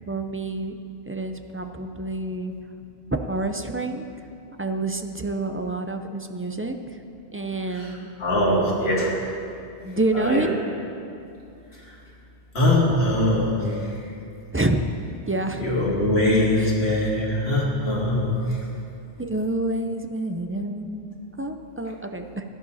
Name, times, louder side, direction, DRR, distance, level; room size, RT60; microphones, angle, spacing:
voice 1, 0.1-0.8 1.1-2.5 3.3-4.0 4.6-6.8 7.3-8.1 9.8-10.6 14.5-14.8 15.3-15.6 16.6-16.7 19.2-21.1 21.4-22.4, right 2 dB, 20° right, 5 dB, 0.4 m, -28 dB
voice 2, 7.7-9.1 10.1-10.5 11.7-12.0 12.5-14.1 15.6-18.6, left 1 dB, 65° left, -4 dB, 2.7 m, -22 dB
16.5 x 11.0 x 4.2 m, 2.6 s
omnidirectional pair, 1.1 m